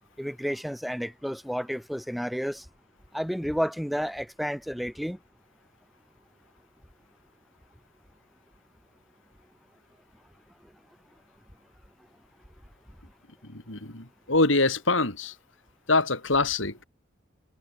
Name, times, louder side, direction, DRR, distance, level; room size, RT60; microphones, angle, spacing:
voice 1, 0.2-2.6 3.1-5.2, equal, ahead, 7.4 m, -31 dB
voice 2, 13.4-15.3 15.9-16.8, left 3 dB, 70° left, 4.0 m, -25 dB
head